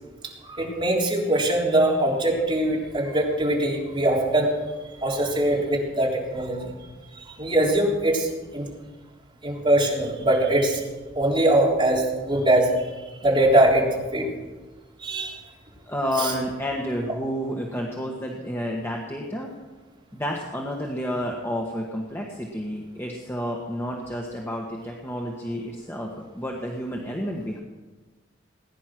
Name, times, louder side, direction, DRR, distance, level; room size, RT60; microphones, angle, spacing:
voice 1, 0.4-4.5 5.0-6.7 7.3-8.7 9.4-10.8 11.1-12.9 13.2-14.3 15.0-15.4 16.2-16.3, right 1 dB, 25° right, -3 dB, 3.7 m, -22 dB
voice 2, 15.9-19.5 20.1-27.6, equal, 15° left, -1 dB, 1.5 m, -30 dB
19.5 x 10.5 x 6.2 m, 1.2 s
head